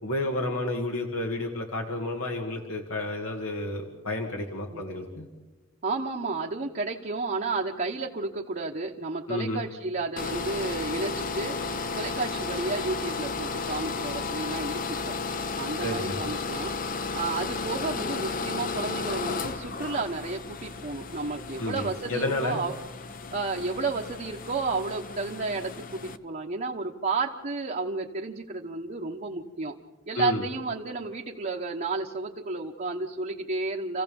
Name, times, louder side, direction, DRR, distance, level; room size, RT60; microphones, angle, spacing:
voice 1, 0.0-5.3 9.3-9.6 15.8-16.2 21.6-22.6 30.1-30.4, left 2 dB, 80° left, 1 dB, 2.1 m, -31 dB
voice 2, 5.8-11.6 11.9-15.1 15.6-16.7 17.1-22.7 23.3-29.7 30.1-34.0, right 3 dB, 40° right, -1 dB, 1.1 m, -32 dB
sound 1, 10.2-26.2, left 4 dB, 40° left, 0.8 m, -34 dB
29.0 x 16.0 x 7.1 m, 1.2 s
head